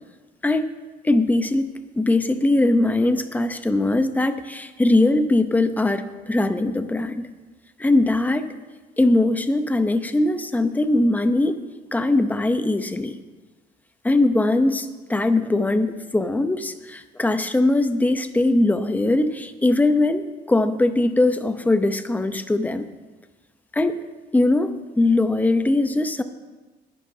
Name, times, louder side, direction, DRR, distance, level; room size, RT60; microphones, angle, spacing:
voice 1, 1.0-1.7 2.0-7.3 7.8-8.5 9.0-11.6 11.9-13.2 14.0-22.9 23.7-24.0 24.3-26.2, left 2 dB, 10° left, 9 dB, 0.8 m, -21 dB
20.0 x 11.0 x 2.8 m, 1.2 s
cardioid pair, 110°, 17 cm